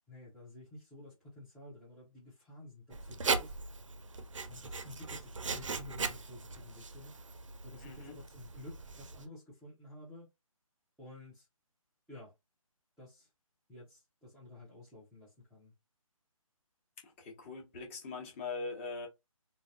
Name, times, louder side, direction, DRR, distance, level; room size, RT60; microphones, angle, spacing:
voice 1, 0.1-3.6 4.5-7.1 7.6-10.3 11.0-11.5 12.1-12.3 13.0-13.3 13.7-15.7, left 2 dB, ahead, 0.5 m, -52 dB
Writing, 2.9-9.2, right 4 dB, 60° right, 0.6 m, -39 dB
voice 2, 7.8-8.2 17.0-19.1, left 4 dB, 20° left, 1.0 m, -42 dB
3.8 x 2.2 x 2.5 m
figure-of-eight pair, 145°, 18 cm